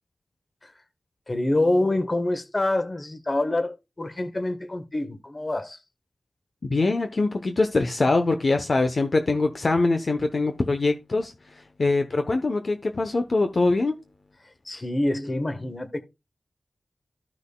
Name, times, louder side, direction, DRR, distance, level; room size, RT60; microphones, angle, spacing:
voice 1, 1.3-5.8 14.6-16.0, left 1 dB, 35° left, 1.3 m, -26 dB
voice 2, 6.6-13.9, left 3 dB, 55° left, 0.9 m, -23 dB
14.0 x 6.2 x 2.3 m
wide cardioid pair, 85°, 0 cm